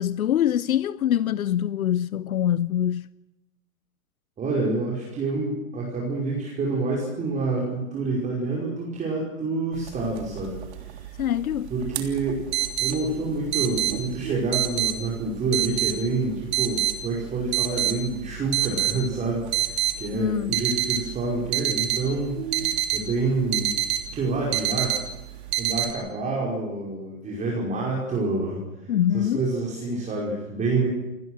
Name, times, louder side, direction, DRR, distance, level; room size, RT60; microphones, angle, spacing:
voice 1, 0.0-3.1 11.2-11.7 20.1-20.5 28.9-29.4, left 11 dB, 80° left, 0.7 m, -24 dB
voice 2, 4.4-11.1 11.7-12.4 12.8-23.8 24.1-25.0 25.6-30.9, right 3 dB, 15° right, 5.2 m, -28 dB
sound 1, 9.8-25.9, right 12 dB, 50° right, 3.3 m, -29 dB
29.0 x 19.5 x 6.4 m
hypercardioid pair, 125°, 42 cm